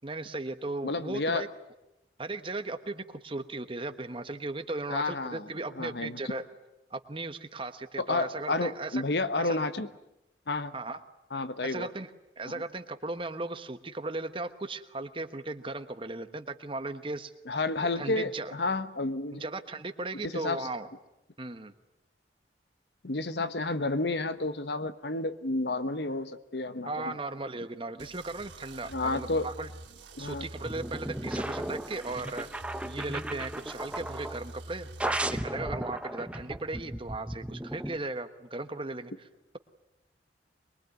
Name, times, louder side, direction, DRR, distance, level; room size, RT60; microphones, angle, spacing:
voice 1, 0.0-1.5 2.2-6.4 6.9-9.0 9.4-9.6 10.7-11.0 11.6-12.1 12.4-17.3 18.0-18.5 19.3-20.9 21.4-21.7 26.9-29.7 30.2-32.5 32.8-39.1, right 2 dB, 30° right, 10 dB, 1.2 m, -37 dB
voice 2, 0.8-1.5 4.9-5.5 5.7-6.2 8.0-9.9 10.5-10.7 11.3-11.9 12.5-12.6 17.5-19.4 20.2-20.7 23.0-27.1 28.9-29.5 30.2-30.5, left 2 dB, 65° left, 11 dB, 1.2 m, -31 dB
sound 1, 28.0-35.4, right 1 dB, 85° right, 2.9 m, -46 dB
sound 2, 30.6-34.4 35.0-38.0, right 1 dB, 5° right, 0.9 m, -35 dB
23.0 x 22.5 x 9.3 m, 0.90 s
head